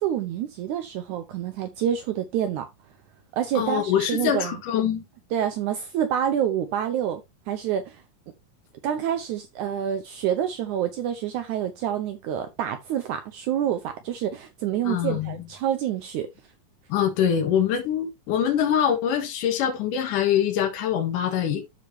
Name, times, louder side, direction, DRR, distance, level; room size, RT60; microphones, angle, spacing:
voice 1, 0.0-2.7 3.3-4.6 5.3-7.2 7.5-8.0 8.8-16.3, right 10 dB, 75° right, 2.1 m, -27 dB
voice 2, 3.5-5.0 14.8-15.4 16.9-21.6, left 9 dB, 70° left, 3.0 m, -24 dB
13.0 x 5.1 x 2.7 m
omnidirectional pair, 3.9 m